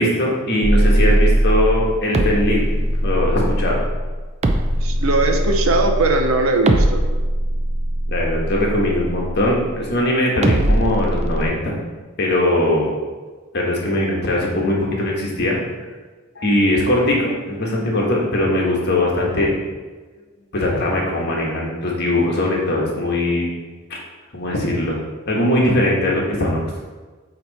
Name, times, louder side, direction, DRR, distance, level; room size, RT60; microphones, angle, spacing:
voice 1, 0.0-2.6 3.0-3.8 8.1-11.7 12.2-12.9 13.5-15.6 16.3-19.5 20.5-23.5 23.9-24.0 24.3-25.0 25.3-26.8, left 1 dB, 50° left, -2 dB, 1.4 m, -20 dB
sound 1, 0.6-9.9 10.4-11.5, right 1 dB, 30° right, 0.5 m, -20 dB
voice 2, 4.8-7.0, right 2 dB, 75° right, 5 dB, 0.7 m, -19 dB
8.6 x 3.1 x 4.1 m, 1.3 s
head